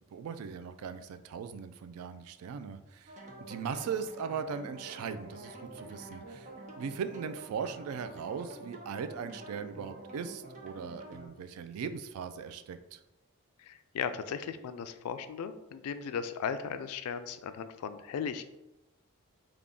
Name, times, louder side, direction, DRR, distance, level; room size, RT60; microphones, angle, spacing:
voice 1, 0.0-13.0, right 6 dB, 85° right, 10 dB, 0.3 m, -39 dB
sound 1, 3.1-11.3, right 2 dB, 35° right, 0.5 m, -47 dB
voice 2, 13.6-18.4, left 7 dB, 90° left, 10 dB, 0.3 m, -37 dB
3.4 x 2.3 x 3.7 m, 0.95 s
head